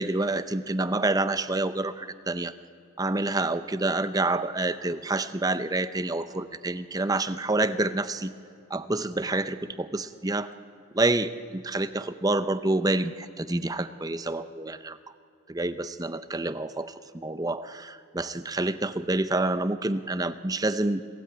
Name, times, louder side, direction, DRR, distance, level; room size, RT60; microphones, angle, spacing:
voice 1, 0.0-2.5 3.0-8.3 8.7-10.5 10.9-15.0 15.5-21.0, right 2 dB, 15° right, 13 dB, 0.6 m, -28 dB
26.0 x 16.5 x 8.8 m, 2.7 s
head